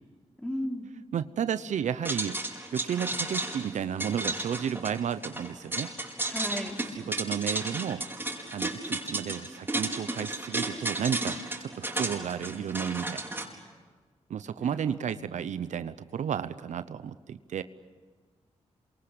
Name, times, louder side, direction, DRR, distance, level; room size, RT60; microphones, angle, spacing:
voice 1, 0.4-0.9 6.2-6.8 14.6-15.1, equal, 10° left, 2 dB, 4.3 m, -35 dB
voice 2, 1.1-2.4 2.7-5.9 6.9-8.0 8.5-13.2 14.3-17.6, right 8 dB, 80° right, 13 dB, 0.8 m, -32 dB
sound 1, 2.0-13.4, right 2 dB, 15° right, 5.0 m, -33 dB
27.5 x 24.0 x 8.6 m, 1.5 s
cardioid pair, 60°, 12 cm